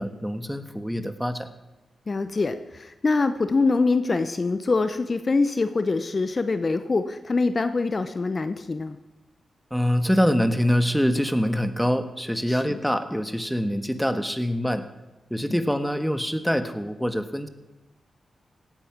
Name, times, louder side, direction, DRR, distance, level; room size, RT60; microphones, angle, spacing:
voice 1, 0.0-1.5 9.7-14.8 15.3-17.5, equal, ahead, 9 dB, 1.5 m, -25 dB
voice 2, 2.1-9.0 12.5-12.8 15.5-15.6, left 3 dB, 45° left, 11 dB, 0.8 m, -24 dB
17.0 x 8.9 x 6.0 m, 1.1 s
supercardioid pair, 45°, 0 cm